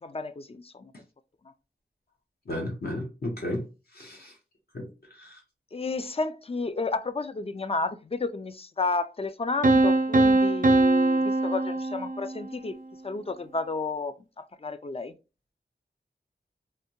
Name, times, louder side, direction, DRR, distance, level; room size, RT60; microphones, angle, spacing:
voice 1, 0.0-0.9 5.7-12.8 13.0-15.1, left 3 dB, 35° left, 0.4 m, -32 dB
voice 2, 2.5-3.6 3.9-4.3 4.7-4.9 5.2-5.4, left 1 dB, 60° left, 1.0 m, -33 dB
Piano, 9.6-12.5, right 2 dB, 50° right, 0.5 m, -22 dB
3.3 x 2.7 x 2.9 m
wide cardioid pair, 75°, 18 cm